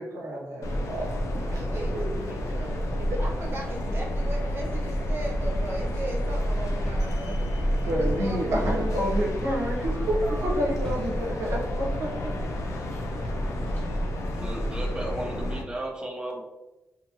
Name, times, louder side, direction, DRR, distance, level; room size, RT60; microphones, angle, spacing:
voice 1, 0.0-1.7 2.6-2.7 3.1-3.2 7.8-12.5, right 1 dB, 80° right, -3 dB, 0.7 m, -29 dB
sound 1, 0.6-15.6, equal, 70° left, 0.5 m, -29 dB
voice 2, 1.3-8.9 10.2-10.7, right 2 dB, 45° right, -2 dB, 0.9 m, -38 dB
sound 2, 1.8-14.9, equal, 35° left, 1.4 m, -51 dB
sound 3, 5.4-5.7 6.0-6.1 6.8-7.2 8.6-9.0 9.7-9.9 10.8-11.2 11.9-12.1 13.1-13.5, left 1 dB, 15° left, 1.1 m, -41 dB
voice 3, 14.4-16.4, right 1 dB, 15° right, -1 dB, 0.7 m, -34 dB
2.8 x 2.5 x 2.7 m, 1.1 s
cardioid pair, 55°, 5 cm